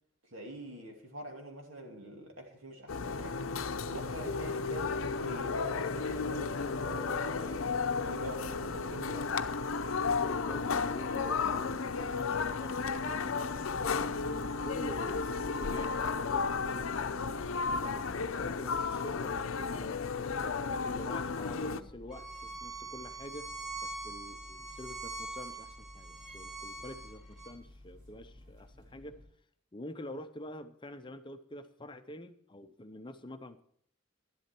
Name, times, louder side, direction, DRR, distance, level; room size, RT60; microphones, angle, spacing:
voice 1, 0.2-3.5 3.9-7.6 8.0-9.5, equal, 80° right, 2.5 m, -45 dB
sound 1, 2.9-21.8, left 4 dB, 85° left, 0.6 m, -33 dB
voice 2, 10.1-11.8 12.0-13.6 14.2-20.0 20.4-23.5 23.8-29.2 29.7-33.6, left 1 dB, 25° left, 0.7 m, -47 dB
sound 2, 13.8-29.3, left 1 dB, 60° right, 4.6 m, -55 dB
Bowed string instrument, 22.1-27.5, right 3 dB, ahead, 2.8 m, -43 dB
11.5 x 11.5 x 4.4 m
head